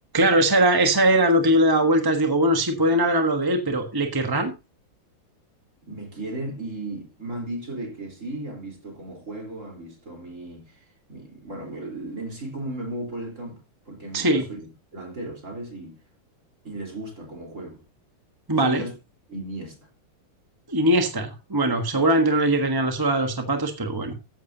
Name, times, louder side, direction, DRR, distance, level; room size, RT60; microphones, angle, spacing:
voice 1, 0.1-4.5 14.1-14.4 18.5-18.8 20.7-24.1, right 1 dB, 15° right, 0.8 m, -21 dB
voice 2, 5.9-10.8 11.1-16.0 16.6-17.8 18.6-18.9 19.3-19.8, right 1 dB, 35° right, 4.2 m, -35 dB
14.5 x 11.0 x 2.8 m
omnidirectional pair, 2.4 m